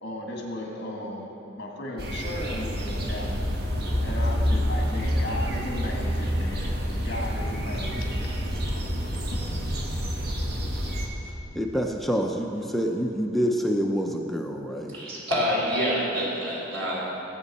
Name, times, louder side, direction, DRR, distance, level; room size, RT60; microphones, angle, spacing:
voice 1, 0.0-3.4 4.0-6.7 7.0-8.0 8.7-8.8 9.2-9.6 10.0-10.1, left 1 dB, 60° left, 0 dB, 1.8 m, -35 dB
sound 1, 2.0-11.1, equal, 55° right, 1.3 m, -28 dB
voice 2, 11.5-15.0, equal, ahead, 1 dB, 0.6 m, -27 dB
voice 3, 14.9-17.1, equal, 75° right, -4 dB, 3.1 m, -27 dB
17.5 x 8.2 x 4.2 m, 2.9 s
head